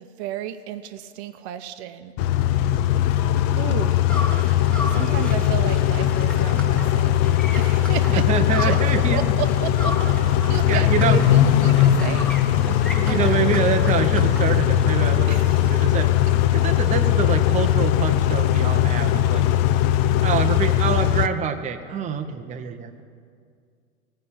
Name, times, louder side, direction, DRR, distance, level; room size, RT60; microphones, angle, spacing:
voice 1, 0.0-2.1 3.6-4.0 4.8-7.2 7.6-13.5 15.3-15.8, right 11 dB, 50° right, 9 dB, 0.8 m, -33 dB
Car / Idling / Accelerating revving vroom, 2.2-21.3, left 12 dB, 45° left, 0.6 m, -19 dB
sound 1, 4.1-9.1 9.4-15.0, left 1 dB, 5° left, 1.6 m, -35 dB
voice 2, 8.1-9.2 10.4-11.2 11.6-12.0 12.7-16.1 16.5-19.4 20.2-23.0, right 7 dB, 15° right, 5 dB, 0.7 m, -26 dB
16.5 x 5.6 x 8.6 m, 2.2 s
hypercardioid pair, 105°, 42 cm